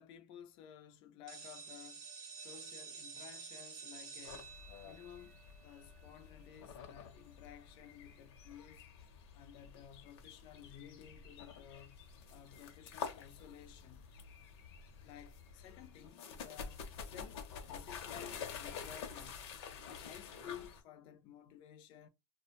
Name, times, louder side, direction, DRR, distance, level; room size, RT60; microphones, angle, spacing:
voice 1, 0.0-2.1 2.4-4.6 4.8-8.9 9.3-14.1 15.0-19.4 19.8-22.1, left 10 dB, 30° left, 0.3 m, -55 dB
sound 1, 1.3-6.9, right 5 dB, 25° right, 0.6 m, -51 dB
sound 2, 4.2-20.8, left 6 dB, 60° left, 0.7 m, -49 dB
2.3 x 2.1 x 2.8 m
supercardioid pair, 155°, 15 cm